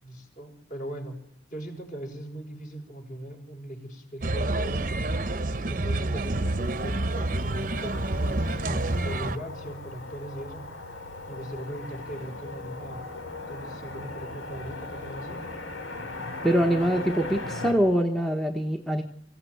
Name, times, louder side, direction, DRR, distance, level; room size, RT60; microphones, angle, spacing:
voice 1, 0.0-1.2 1.5-5.1 5.7-10.6 11.3-13.1 13.5-15.4, right 1 dB, 40° left, 3 dB, 5.7 m, -39 dB
sound 1, 4.2-9.4, right 2 dB, 40° right, 0.9 m, -28 dB
Motor vehicle (road), 5.8-17.7, left 2 dB, 85° left, 3.9 m, -39 dB
voice 2, 16.4-19.0, equal, ahead, 3 dB, 1.1 m, -24 dB
24.5 x 15.5 x 9.3 m, 0.73 s
head